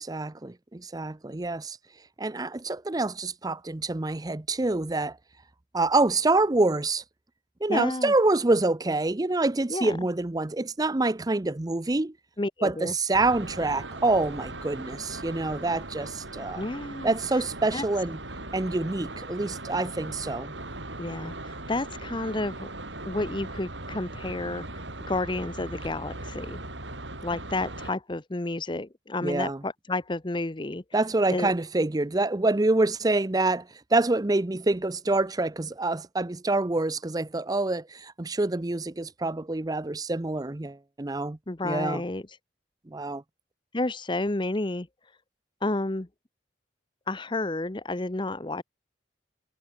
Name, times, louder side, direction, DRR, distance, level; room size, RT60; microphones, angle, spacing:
voice 1, 0.0-1.8 2.2-5.2 5.7-7.0 7.6-12.1 12.6-16.6 17.0-18.2 18.5-20.5 29.2-29.6 30.9-41.4 41.6-42.0 42.9-43.2, right 2 dB, 20° right, 0.6 m, -26 dB
voice 2, 7.7-8.1 9.7-10.0 12.4-12.9 16.5-17.1 17.7-17.8 21.0-22.7 23.1-24.6 25.1-26.6 27.2-30.8 31.3-31.5 41.5-42.3 43.7-44.9 45.6-46.1 47.1-48.6, left 2 dB, 25° left, 0.9 m, -31 dB
sound 1, 13.1-27.9, right 2 dB, 85° right, 7.9 m, -39 dB
head